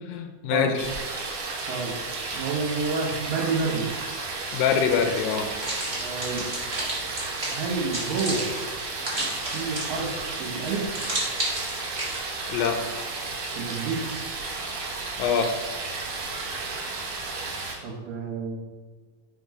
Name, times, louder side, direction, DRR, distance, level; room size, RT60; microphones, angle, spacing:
voice 1, 0.1-0.9 4.5-5.5 12.5-12.8 15.2-15.5, left 7 dB, 90° left, 6 dB, 2.3 m, -24 dB
sound 1, 0.8-17.8, right 3 dB, 65° right, 1.7 m, -33 dB
voice 2, 2.3-3.9 5.9-6.5 7.5-8.5 9.5-10.1 10.4-10.9 13.6-14.0 17.8-18.7, right 4 dB, 85° right, -5 dB, 2.8 m, -29 dB
sound 2, 5.6-10.2 10.9-12.2, right 1 dB, 30° right, 0.8 m, -32 dB
5.3 x 4.4 x 4.8 m, 1.4 s
omnidirectional pair, 3.9 m